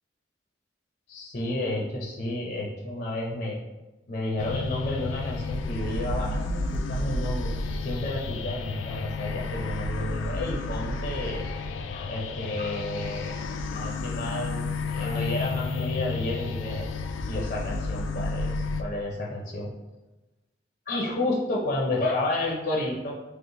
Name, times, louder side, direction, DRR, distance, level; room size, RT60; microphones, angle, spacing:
voice 1, 1.1-3.6 4.1-7.5 7.8-11.5 11.9-16.8 17.3-19.7 20.9-23.4, left 1 dB, 40° left, -3 dB, 0.6 m, -31 dB
sound 1, 4.4-18.8, left 3 dB, 85° left, 0.3 m, -31 dB
5.2 x 2.1 x 3.0 m, 1.1 s
head